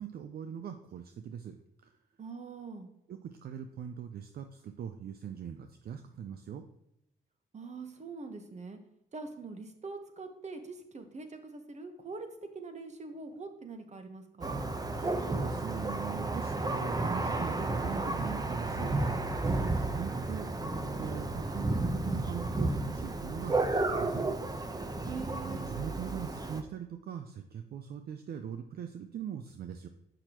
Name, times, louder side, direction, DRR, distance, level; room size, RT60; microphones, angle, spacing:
voice 1, 0.0-1.9 3.1-6.7 15.0-24.3 25.4-29.9, right 8 dB, 60° right, 7 dB, 0.5 m, -41 dB
voice 2, 2.2-2.9 7.5-8.8 9.1-12.3 12.5-14.6 25.0-25.7, right 4 dB, 40° right, 6 dB, 1.1 m, -43 dB
Thunder, 14.4-26.6, right 2 dB, 20° right, 0.8 m, -32 dB
6.9 x 5.8 x 3.0 m, 0.83 s
supercardioid pair, 55°, 18 cm